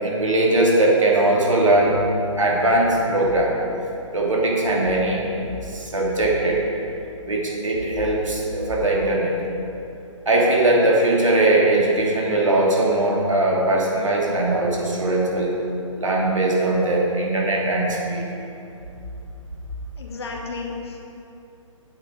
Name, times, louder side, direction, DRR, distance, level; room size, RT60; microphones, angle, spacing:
voice 1, 0.0-2.0 2.4-3.6 4.1-5.2 5.6-6.7 7.3-9.3 10.3-15.5 16.0-18.3, right 2 dB, 70° right, -3 dB, 2.5 m, -20 dB
voice 2, 20.0-21.0, left 3 dB, 50° left, 0 dB, 1.7 m, -32 dB
10.0 x 7.7 x 5.1 m, 2.8 s
figure-of-eight pair, 130°, 17 cm